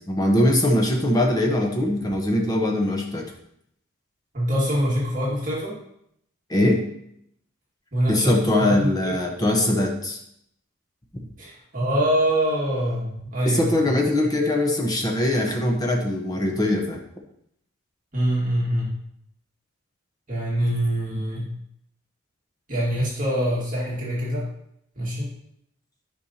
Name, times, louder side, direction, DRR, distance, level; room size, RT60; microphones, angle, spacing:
voice 1, 0.1-3.3 6.5-6.8 8.1-10.2 13.4-17.0, left 1 dB, 20° left, 1 dB, 1.0 m, -21 dB
voice 2, 4.3-5.7 7.9-9.2 11.4-13.9 18.1-18.9 20.3-21.5 22.7-24.5 25.0-25.3, equal, 40° right, -6 dB, 2.1 m, -24 dB
11.5 x 5.4 x 2.9 m, 0.72 s
head